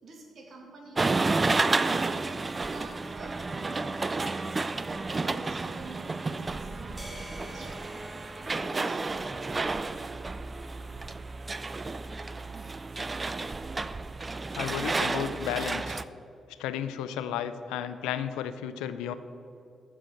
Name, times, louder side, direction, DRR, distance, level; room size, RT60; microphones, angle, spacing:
voice 1, 0.0-2.1 2.7-4.7 5.1-7.7 8.5-9.3, right 2 dB, 60° right, 1 dB, 2.1 m, -47 dB
sound 1, 1.0-16.0, right 3 dB, 35° right, 0.4 m, -31 dB
sound 2, 7.0-11.3, equal, 15° right, 1.9 m, -49 dB
voice 2, 14.6-16.0 16.6-19.1, left 9 dB, 85° left, 12 dB, 0.4 m, -33 dB
7.4 x 6.7 x 7.3 m, 2.6 s
hypercardioid pair, 50°, 0 cm